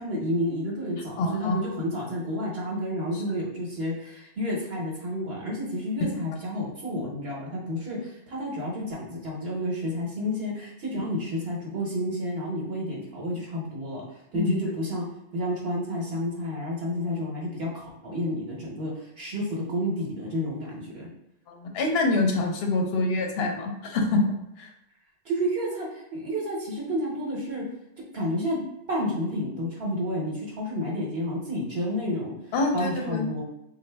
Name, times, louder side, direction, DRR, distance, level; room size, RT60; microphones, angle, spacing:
voice 1, 0.0-14.0 14.3-15.0 15.3-21.1 25.2-27.6 28.1-28.6 28.9-32.3 32.7-33.4, equal, 60° right, -4 dB, 1.0 m, -30 dB
voice 2, 1.2-1.6 3.1-3.2 14.3-14.6 21.5-24.2 24.6-24.7 32.5-33.3, left 2 dB, 65° left, 3 dB, 0.8 m, -25 dB
3.9 x 2.2 x 3.3 m, 0.82 s
omnidirectional pair, 1.2 m